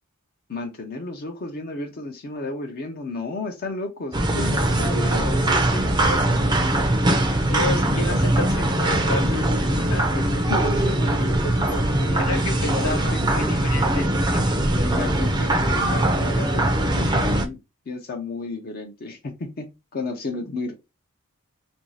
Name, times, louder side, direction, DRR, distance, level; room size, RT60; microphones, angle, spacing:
voice 1, 0.5-6.3 10.1-10.2 10.5-12.2 12.6-13.2 14.8-17.6 17.9-20.7, left 2 dB, 45° left, 0.5 m, -33 dB
sound 1, 4.1-17.5, right 1 dB, 20° right, 0.5 m, -21 dB
voice 2, 7.3-10.2 12.3-14.7, left 3 dB, 70° left, 1.1 m, -31 dB
2.6 x 2.3 x 3.1 m
head